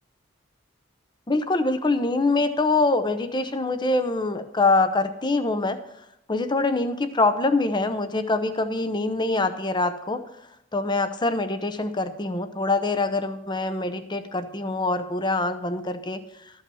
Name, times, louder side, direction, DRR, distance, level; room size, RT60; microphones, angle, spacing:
voice 1, 1.3-5.8 6.3-10.2 10.7-16.2, left 2 dB, 25° left, 10 dB, 0.7 m, -24 dB
13.0 x 5.7 x 7.0 m, 0.83 s
head